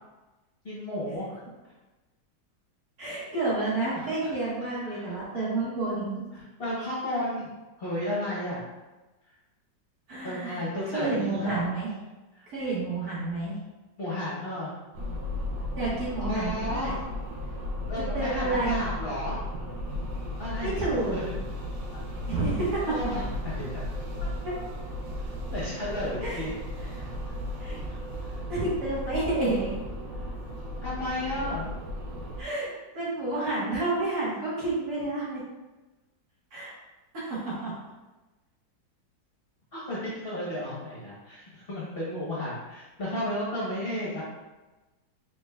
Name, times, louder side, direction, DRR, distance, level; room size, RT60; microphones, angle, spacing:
voice 1, 0.6-1.4 3.9-4.3 4.9-5.2 6.6-7.5 7.8-8.6 10.2-11.6 14.0-14.7 16.2-17.0 17.9-19.4 20.4-20.8 21.1-21.3 21.9-22.0 22.9-23.8 24.2-24.3 25.5-26.6 28.2-28.4 30.1-30.2 30.8-31.7 39.7-44.2, left 1 dB, 40° left, -8 dB, 1.0 m, -33 dB
voice 2, 3.0-6.2 10.1-10.6 10.9-11.9 12.5-13.6 15.8-16.9 18.0-18.8 20.6-21.2 22.3-23.1 24.4-24.6 26.2-26.5 26.8-27.0 27.6-27.8 28.5-29.7 32.4-35.4 36.5-36.7 37.1-37.7, right 2 dB, 55° right, -7 dB, 1.9 m, -30 dB
sound 1, 14.9-32.4, left 1 dB, 85° right, 1.4 m, -35 dB
4.9 x 3.8 x 2.3 m, 1.1 s
omnidirectional pair, 1.9 m